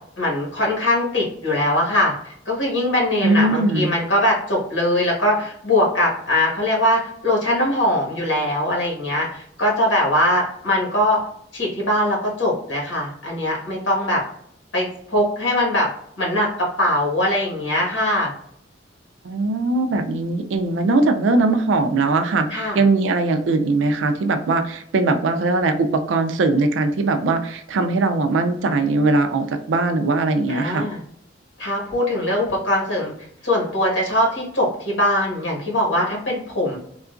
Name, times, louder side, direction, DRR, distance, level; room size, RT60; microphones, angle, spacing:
voice 1, 0.2-11.2 11.5-14.2 14.7-15.9 16.2-18.3 22.5-22.8 30.5-31.0 31.6-33.1 33.4-36.8, left 1 dB, 75° left, -3 dB, 1.4 m, -21 dB
voice 2, 3.2-3.9 19.2-30.9, right 3 dB, 80° right, 7 dB, 0.4 m, -20 dB
3.6 x 2.3 x 2.4 m, 0.68 s
head